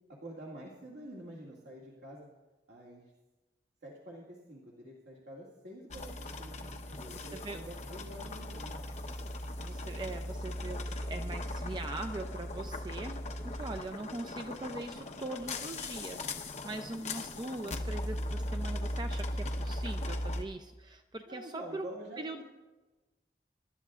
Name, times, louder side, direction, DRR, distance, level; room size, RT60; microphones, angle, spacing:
voice 1, 0.1-2.3 2.7-3.0 3.8-8.8 21.3-22.4, right 1 dB, 85° right, -4 dB, 2.1 m, -48 dB
sound 1, 5.9-20.4, left 1 dB, 40° left, 1.0 m, -38 dB
voice 2, 7.1-7.6 9.0-9.2 9.5-22.4, right 2 dB, 25° right, 6 dB, 0.4 m, -42 dB
25.5 x 12.0 x 2.4 m, 1.2 s
head